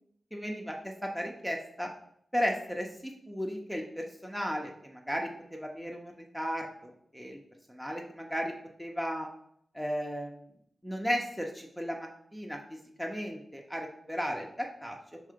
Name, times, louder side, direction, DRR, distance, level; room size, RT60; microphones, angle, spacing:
voice 1, 0.3-1.9 2.3-7.4 7.7-8.5 8.8-9.3 9.7-10.5 10.8-15.0, equal, ahead, 0 dB, 0.8 m, -35 dB
5.2 x 3.7 x 5.1 m, 0.68 s
wide cardioid pair, 105°, 0 cm